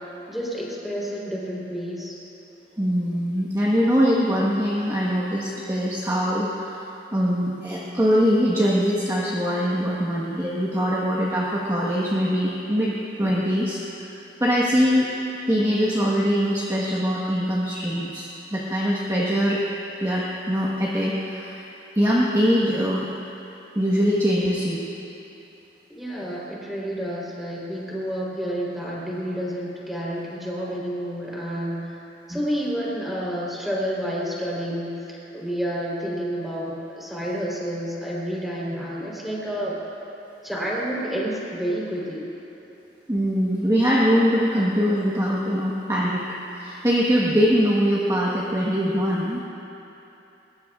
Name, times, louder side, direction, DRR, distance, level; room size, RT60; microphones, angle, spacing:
voice 1, 0.0-2.2 25.9-39.8 40.4-42.3, equal, ahead, -6 dB, 3.6 m, -30 dB
voice 2, 2.8-6.7 7.1-14.1 14.4-15.1 15.5-19.6 20.0-21.6 21.9-23.1 23.7-24.8 32.3-32.4 43.1-46.2 46.5-49.4, equal, 20° right, -6 dB, 1.3 m, -22 dB
22.5 x 21.0 x 2.4 m, 3.0 s
head